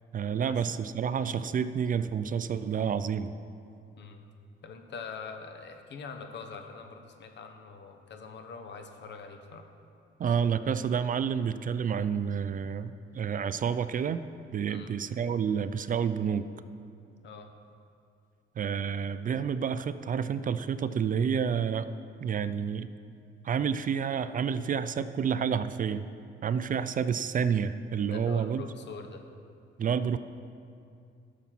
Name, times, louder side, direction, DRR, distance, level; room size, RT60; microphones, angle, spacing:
voice 1, 0.1-3.3 10.2-14.2 14.5-16.5 18.6-21.9 22.2-22.9 23.4-26.1 26.4-28.7 29.8-30.2, right 7 dB, 45° right, 13 dB, 0.4 m, -29 dB
voice 2, 4.6-9.7 14.7-15.2 17.2-17.5 28.1-29.2, left 5 dB, 60° left, 6 dB, 1.2 m, -44 dB
11.5 x 7.0 x 6.0 m, 2.4 s
cardioid pair, 90°, 20 cm